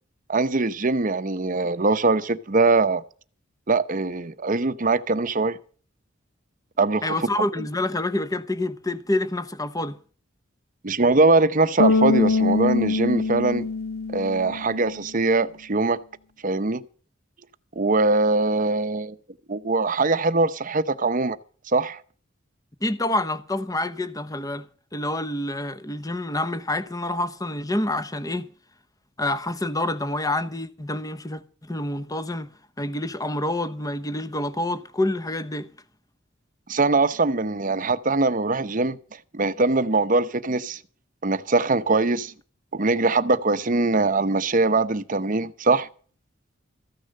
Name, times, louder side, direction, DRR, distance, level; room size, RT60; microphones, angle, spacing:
voice 1, 0.3-3.0 3.7-5.6 6.8-7.1 10.8-13.7 14.1-16.0 16.4-16.8 17.8-19.1 19.5-21.4 21.7-22.0 36.7-39.0 39.3-40.8 41.2-42.3 42.7-45.9, right 3 dB, 40° right, 0.8 m, -22 dB
voice 2, 7.0-10.0 22.8-24.7 24.9-28.5 29.2-35.7, left 1 dB, 20° left, 1.0 m, -27 dB
Bass guitar, 11.8-14.9, left 3 dB, 75° left, 0.5 m, -23 dB
14.5 x 10.0 x 6.5 m
head